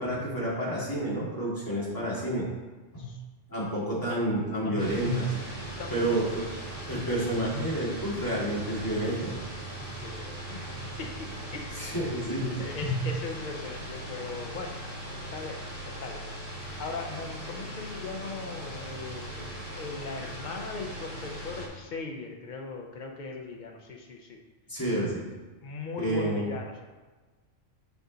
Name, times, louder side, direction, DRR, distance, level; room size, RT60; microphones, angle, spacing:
voice 1, 0.0-2.5 2.9-3.1 3.5-5.3 5.9-6.4 6.9-9.4 10.7-10.8 11.8-12.5 12.8-13.0 24.7-25.3 26.0-26.5, right 1 dB, 15° left, -7 dB, 2.2 m, -29 dB
voice 2, 4.6-5.0 5.8-6.2 10.0-10.6 11.0-11.8 12.6-14.7 15.3-15.6 16.0-16.4 16.8-24.4 25.6-26.9, left 4 dB, 45° left, 2 dB, 0.9 m, -39 dB
sound 1, 4.8-21.7, right 1 dB, 75° left, 2.7 m, -39 dB
7.3 x 5.3 x 4.0 m, 1.3 s
omnidirectional pair, 1.3 m